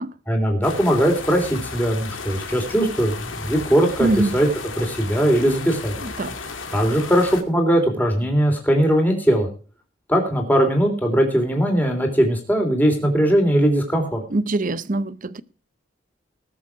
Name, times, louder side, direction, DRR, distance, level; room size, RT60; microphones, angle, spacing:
voice 1, 0.3-4.1 4.3-4.5 4.8-5.9 6.7-9.5 10.1-14.2, equal, 10° left, 3.4 m, -19 dB
sound 1, 0.6-7.4, left 4 dB, 85° left, 2.1 m, -34 dB
voice 2, 4.0-4.4 6.0-6.4 14.3-15.4, right 2 dB, 45° right, 0.7 m, -23 dB
19.5 x 7.1 x 4.8 m
head